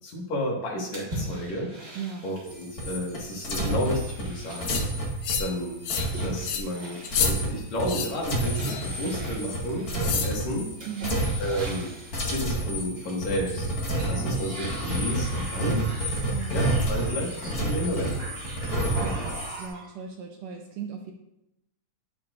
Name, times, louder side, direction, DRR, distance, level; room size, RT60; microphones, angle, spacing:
voice 1, 0.0-1.7 2.2-4.8 5.4-5.8 6.2-10.7 11.4-13.7 14.1-15.9 16.5-18.2, equal, 70° left, -3 dB, 3.1 m, -31 dB
sound 1, 0.9-2.7 3.7-5.0 6.0-7.4 8.4-10.1 10.8-12.3 13.0-13.6 13.9-19.9, right 2 dB, 35° right, 3.0 m, -39 dB
voice 2, 1.9-2.3 10.9-11.3 16.3-16.6 18.9-21.1, right 6 dB, 75° right, 3 dB, 1.6 m, -37 dB
sound 2, 2.5-10.7 11.0-11.9 12.1-19.7, right 1 dB, 35° left, 1.9 m, -30 dB
sound 3, 4.6-4.8 5.2-5.5 5.8-6.1 6.4-6.6 7.0-7.3 7.8-8.1 8.5-8.8 10.0-10.3, left 7 dB, 85° left, 2.3 m, -28 dB
10.5 x 7.3 x 2.5 m, 0.84 s
omnidirectional pair, 3.4 m